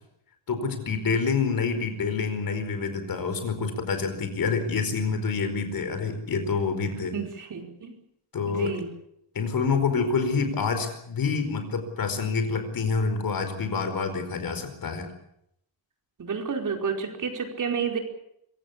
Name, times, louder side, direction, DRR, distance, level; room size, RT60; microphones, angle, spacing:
voice 1, 0.5-7.1 8.3-8.8 9.3-15.1, left 5 dB, 50° left, 8 dB, 4.9 m, -27 dB
voice 2, 7.1-8.0 8.5-8.9 16.2-18.0, right 6 dB, 40° right, 3 dB, 4.8 m, -30 dB
25.5 x 16.5 x 8.7 m, 0.76 s
cardioid pair, 140°, 45 cm